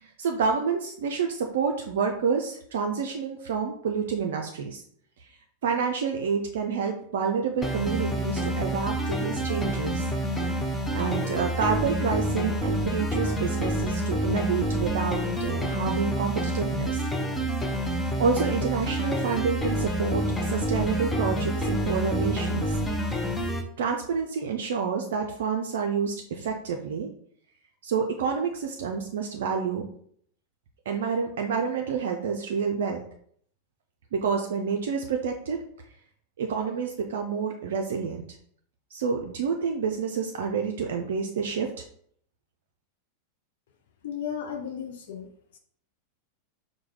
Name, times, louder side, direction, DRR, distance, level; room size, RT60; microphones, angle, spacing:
voice 1, 0.0-4.8 5.6-10.1 10.6-10.7 10.9-17.0 17.8-22.8 23.8-27.1 27.8-29.9 30.9-33.0 34.1-35.6 36.4-38.2 38.9-41.7, right 6 dB, 60° right, 2 dB, 0.4 m, -28 dB
sound 1, 7.6-23.6, equal, 10° left, 0.6 m, -28 dB
voice 2, 44.0-45.6, left 8 dB, 55° left, 4 dB, 0.5 m, -35 dB
4.7 x 2.2 x 4.6 m, 0.63 s
figure-of-eight pair, 90°, 0 cm